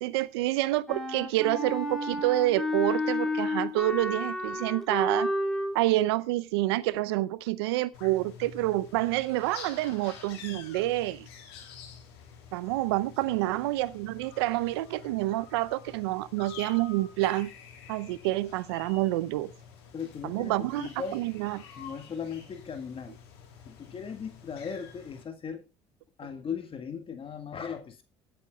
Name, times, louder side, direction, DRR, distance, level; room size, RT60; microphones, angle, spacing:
voice 1, 0.0-5.3 5.7-11.3 12.5-17.5 17.9-19.5 20.2-21.6, right 17 dB, 85° right, 0.7 m, -28 dB
Wind instrument woodwind instrument, 0.9-5.8, left 1 dB, 5° left, 3.1 m, -31 dB
sound 1, 7.9-25.2, left 6 dB, 85° left, 3.1 m, -49 dB
voice 2, 19.9-21.2 21.8-23.2 23.7-25.7 26.2-28.0, left 6 dB, 45° left, 1.8 m, -38 dB
24.5 x 8.8 x 2.3 m
hypercardioid pair, 70°, 13 cm